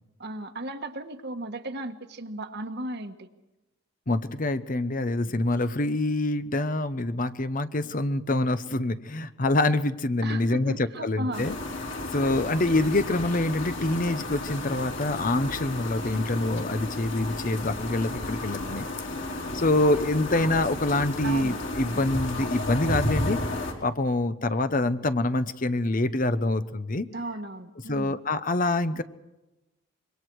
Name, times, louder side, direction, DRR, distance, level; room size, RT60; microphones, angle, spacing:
voice 1, 0.2-3.3 10.2-11.5 21.2-21.6 27.1-28.2, right 1 dB, 50° right, 7 dB, 1.5 m, -35 dB
voice 2, 4.1-11.5 12.1-18.9 19.5-23.4 23.8-27.1 27.9-29.0, left 2 dB, 40° left, 11 dB, 0.8 m, -26 dB
sound 1, 11.3-23.7, left 2 dB, 55° left, 3.8 m, -33 dB
26.5 x 23.0 x 4.8 m, 1.0 s
head